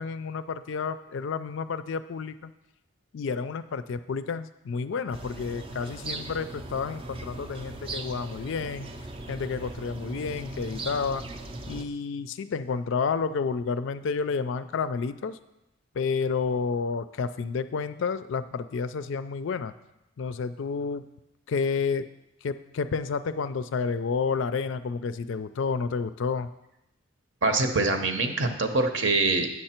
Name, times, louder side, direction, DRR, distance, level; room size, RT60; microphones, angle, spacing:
voice 1, 0.0-2.5 3.1-8.9 9.3-11.2 11.6-15.4 15.9-19.7 20.2-21.0 21.5-22.1 22.4-26.5, left 5 dB, 60° left, 12 dB, 0.4 m, -30 dB
sound 1, 5.1-11.8, right 2 dB, 25° right, 0.4 m, -39 dB
voice 2, 27.4-29.5, right 2 dB, 55° right, 6 dB, 0.9 m, -24 dB
8.5 x 6.5 x 4.4 m, 0.89 s
head